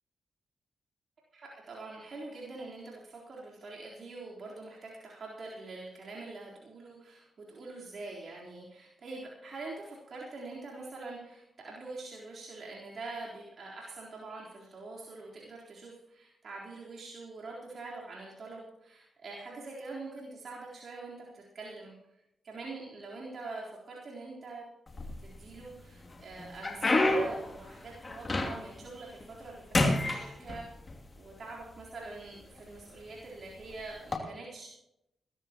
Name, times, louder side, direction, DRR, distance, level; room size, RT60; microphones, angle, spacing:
voice 1, 1.7-21.9 22.4-24.6 25.2-30.6 31.2-34.7, right 3 dB, 60° right, -5 dB, 3.9 m, -44 dB
sound 1, 24.9-25.6 26.1-28.8 29.2-29.5 29.7-31.0 31.8-31.9 32.6-32.8 34.0-34.2, left 2 dB, 40° left, 2.8 m, -29 dB
22.0 x 14.0 x 3.0 m, 0.83 s
supercardioid pair, 45°, 0 cm